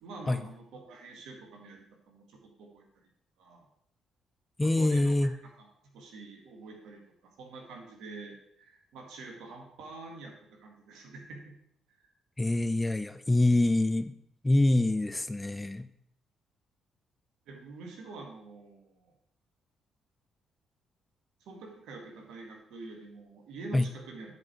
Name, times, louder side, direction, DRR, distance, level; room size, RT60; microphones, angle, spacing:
voice 1, 0.0-3.1 3.4-3.7 4.6-5.3 5.6-11.5 11.9-12.0 17.5-19.1 21.4-24.3, right 3 dB, 75° right, 1 dB, 1.7 m, -46 dB
voice 2, 4.6-5.3 12.4-14.1 14.4-15.9 23.7-23.9, left 2 dB, 15° left, 11 dB, 0.5 m, -25 dB
9.7 x 4.8 x 4.6 m, 0.69 s
hypercardioid pair, 50°, 0 cm